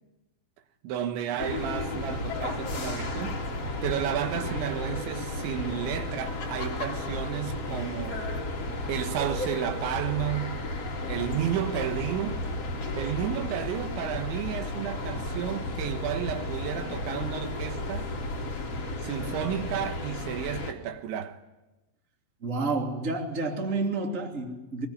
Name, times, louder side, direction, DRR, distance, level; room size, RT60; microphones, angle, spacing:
voice 1, 0.8-3.4 3.8-8.3 8.9-10.6 11.1-12.4 13.0-18.1 19.0-21.4, right 10 dB, 85° right, 3.6 m, -32 dB
sound 1, 1.4-20.7, left 2 dB, 40° left, 3.1 m, -33 dB
voice 2, 22.4-24.9, right 3 dB, 20° right, 2.5 m, -30 dB
23.0 x 20.5 x 10.0 m
omnidirectional pair, 5.3 m